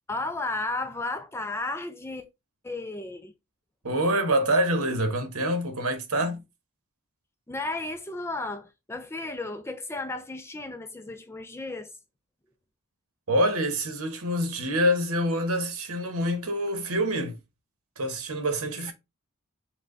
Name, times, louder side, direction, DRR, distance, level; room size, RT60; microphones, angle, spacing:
voice 1, 0.1-2.2 2.6-3.3 7.5-12.0, left 2 dB, 10° left, 0.4 m, -33 dB
voice 2, 3.8-6.4 13.3-17.3 18.0-18.9, equal, 70° right, 1.2 m, -26 dB
6.2 x 2.3 x 3.8 m
head